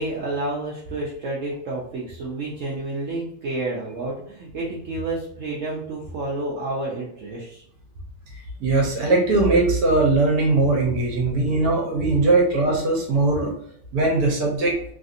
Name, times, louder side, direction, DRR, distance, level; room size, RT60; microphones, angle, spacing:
voice 1, 0.0-7.6, right 2 dB, 85° right, -4 dB, 0.6 m, -30 dB
voice 2, 8.6-13.5 13.9-14.8, right 2 dB, 60° right, -1 dB, 1.1 m, -20 dB
3.2 x 2.6 x 2.5 m, 0.68 s
omnidirectional pair, 2.1 m